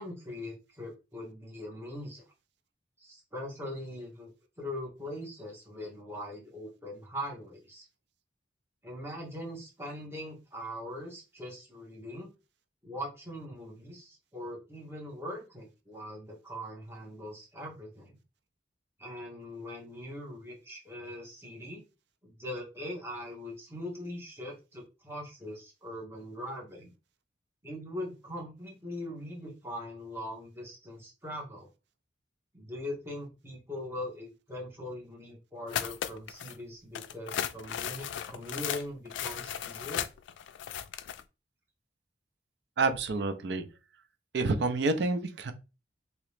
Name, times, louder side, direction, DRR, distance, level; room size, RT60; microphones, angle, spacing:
voice 1, 0.0-2.2 3.0-7.9 8.8-12.3 12.8-18.2 19.0-21.8 22.2-26.9 27.6-31.7 32.5-40.0, left 1 dB, 15° right, 1.2 m, -41 dB
sound 1, 35.7-36.6 36.9-41.2, left 9 dB, 90° left, 0.3 m, -36 dB
voice 2, 42.8-43.7 44.3-45.5, right 3 dB, 70° right, 0.5 m, -28 dB
2.9 x 2.9 x 3.2 m
head